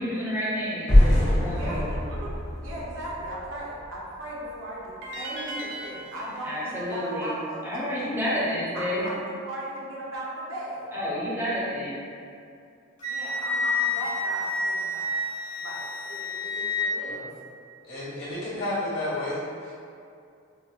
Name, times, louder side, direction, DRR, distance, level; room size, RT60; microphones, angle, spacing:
voice 1, 0.0-1.8 6.4-7.3 7.6-9.1 10.9-12.0, equal, 10° right, -8 dB, 0.5 m, -30 dB
sound 1, 0.9-3.9, left 1 dB, 90° left, 0.9 m, -22 dB
voice 2, 1.5-2.3 2.6-8.4 8.7-10.9 13.0-15.2 15.6-17.2, right 1 dB, 75° right, -6 dB, 0.7 m, -37 dB
sound 2, 5.0-8.2, right 1 dB, 60° right, 0.3 m, -40 dB
Wind instrument woodwind instrument, 13.0-16.9, left 2 dB, 40° left, 0.6 m, -29 dB
voice 3, 17.9-19.7, left 1 dB, 60° left, -8 dB, 1.3 m, -31 dB
4.2 x 2.1 x 2.3 m, 2.4 s
head